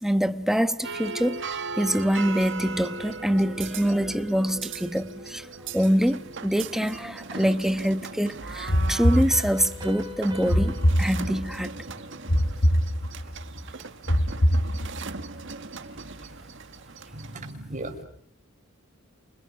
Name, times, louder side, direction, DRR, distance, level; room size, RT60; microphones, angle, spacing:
voice 1, 0.0-5.5 5.7-11.8, equal, ahead, 1.2 m, -25 dB
sound 1, 0.8-17.5, right 4 dB, 60° right, 1.9 m, -38 dB
sound 2, 8.7-9.9 10.5-11.6 12.3-13.4 14.1-15.2, equal, 45° left, 1.3 m, -23 dB
Piano, 9.3-12.7, left 1 dB, 20° right, 6.5 m, -42 dB
voice 2, 17.1-18.1, right 1 dB, 35° right, 6.7 m, -36 dB
30.0 x 29.0 x 6.7 m
head